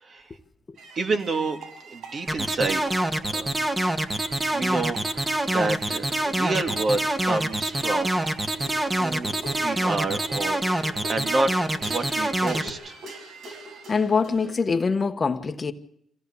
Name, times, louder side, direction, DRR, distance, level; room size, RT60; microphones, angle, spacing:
sound 1, 0.8-14.6, right 2 dB, 75° right, 5.5 m, -44 dB
voice 1, 1.0-1.6 1.9-3.0 3.3-3.5 4.5-8.2 9.0-11.5 11.8-13.0, right 3 dB, 45° right, 5 dB, 2.2 m, -29 dB
sound 2, 2.3-12.7, right 1 dB, 15° right, 1.8 m, -25 dB
voice 2, 13.9-15.7, left 5 dB, 35° left, 8 dB, 1.3 m, -24 dB
25.5 x 16.5 x 7.1 m, 0.74 s
cardioid pair, 90°, 0 cm